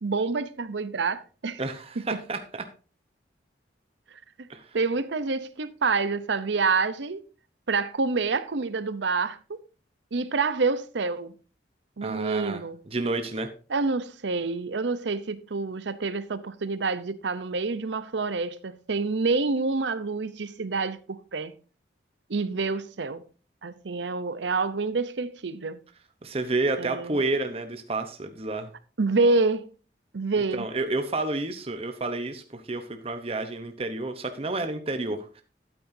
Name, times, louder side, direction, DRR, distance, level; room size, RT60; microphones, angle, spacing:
voice 1, 0.0-1.6 4.4-4.5 4.7-7.2 7.7-9.6 10.1-11.3 12.0-12.8 13.7-21.5 22.3-23.2 23.6-25.8 26.8-27.2 29.0-29.7 30.1-30.7, right 4 dB, 75° right, 0.7 m, -27 dB
voice 2, 1.6-2.7 4.5-4.8 12.0-13.5 26.2-28.7 30.5-35.4, right 2 dB, 30° right, 0.8 m, -30 dB
12.5 x 8.8 x 2.7 m
head